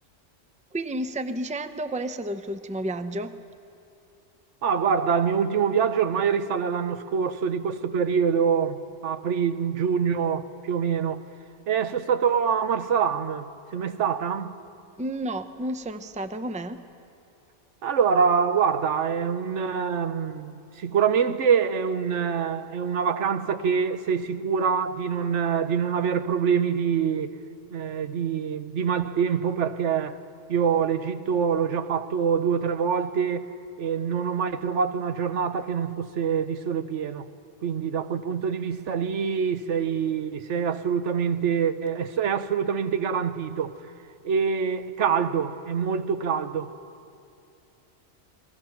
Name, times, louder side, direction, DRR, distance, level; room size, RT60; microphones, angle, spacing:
voice 1, 0.7-3.4 15.0-16.8, right 1 dB, 10° right, 0.6 m, -31 dB
voice 2, 4.6-11.2 11.7-14.6 17.8-27.3 27.7-30.2 30.5-37.3 37.6-43.7 44.2-46.7, right 7 dB, 80° right, 1.2 m, -25 dB
30.0 x 21.0 x 5.9 m
omnidirectional pair, 1.2 m